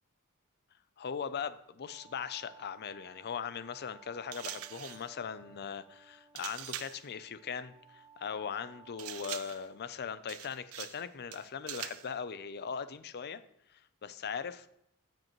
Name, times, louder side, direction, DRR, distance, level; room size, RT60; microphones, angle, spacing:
voice 1, 1.0-13.4 13.7-14.7, left 6 dB, 50° left, 14 dB, 0.5 m, -40 dB
sound 1, 1.9-10.0, right 5 dB, ahead, 0.7 m, -59 dB
sound 2, 4.3-5.1 6.3-7.0 9.0-9.7 10.3-11.0 11.3-12.1, right 12 dB, 70° right, 0.5 m, -43 dB
16.0 x 5.3 x 3.1 m, 0.76 s
head